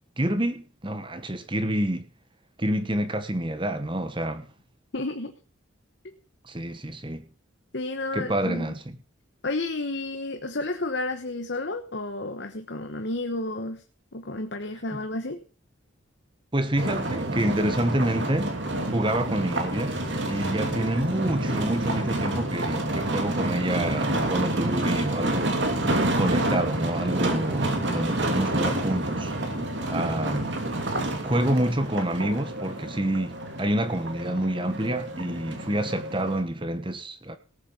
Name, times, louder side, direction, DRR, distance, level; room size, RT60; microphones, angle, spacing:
voice 1, 0.2-2.1 2.6-4.5 6.4-7.3 8.1-9.0 14.9-15.0 16.5-20.0 20.3-25.6 26.2-29.3 29.9-30.5 31.2-37.4, right 1 dB, 25° right, 1.1 m, -28 dB
voice 2, 4.9-5.3 7.7-8.7 9.4-13.8 14.1-15.4, left 2 dB, 55° left, 1.2 m, -31 dB
sound 1, 16.8-36.4, right 1 dB, 60° right, 2.8 m, -28 dB
18.0 x 7.5 x 5.4 m
head